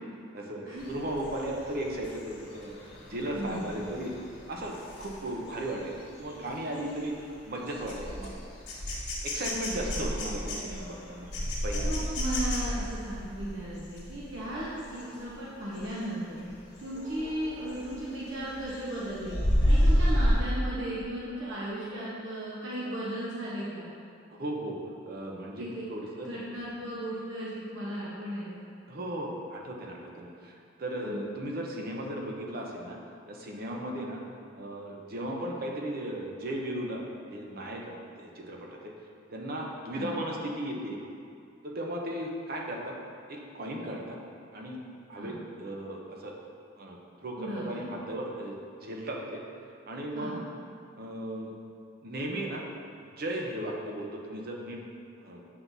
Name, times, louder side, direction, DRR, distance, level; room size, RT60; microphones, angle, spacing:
voice 1, 0.3-4.1 4.5-5.9 6.2-7.2 7.5-8.4 9.2-11.3 11.6-11.9 24.3-24.8 25.1-26.3 28.9-33.0 33.3-34.2 34.5-37.0 37.3-38.9 39.3-41.0 41.6-42.9 43.3-44.2 44.5-44.8 45.1-46.3 46.8-48.6 48.8-49.4 49.9-50.5 51.0-51.5 52.0-52.6 53.2-54.8 55.2-55.4, right 1 dB, 50° right, -1 dB, 0.8 m, -36 dB
sound 1, 0.8-15.3 15.7-16.0 16.4-18.0 18.4-20.4, equal, 60° left, 1.5 m, -31 dB
voice 2, 3.3-3.7 9.8-10.1 11.8-16.4 16.8-19.4 19.6-23.9 25.6-25.8 26.2-28.6 31.0-31.2 39.9-40.1 45.2-45.4 47.4-47.8 50.1-50.4, right 1 dB, 70° right, -8 dB, 1.0 m, -36 dB
7.7 x 5.9 x 2.7 m, 2.4 s
head